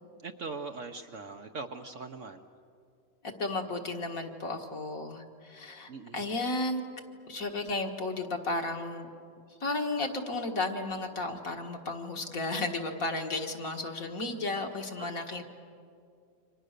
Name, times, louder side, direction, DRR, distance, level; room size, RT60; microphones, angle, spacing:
voice 1, 0.2-2.4 5.9-6.3, right 4 dB, 55° right, 6 dB, 1.1 m, -41 dB
voice 2, 3.4-6.8 7.3-9.1 9.6-15.4, left 2 dB, 55° left, 3 dB, 2.1 m, -33 dB
30.0 x 25.5 x 6.7 m, 2.4 s
omnidirectional pair, 1.8 m